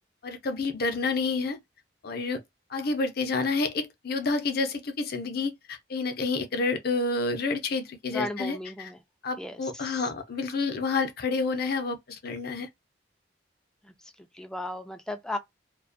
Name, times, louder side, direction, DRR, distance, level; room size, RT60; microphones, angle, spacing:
voice 1, 0.2-1.6 2.0-2.4 2.7-8.9 9.2-12.7, left 3 dB, 55° left, 0.5 m, -29 dB
voice 2, 8.1-9.0 9.4-10.1 13.8-15.4, left 1 dB, 5° left, 0.3 m, -36 dB
2.3 x 2.2 x 2.4 m
head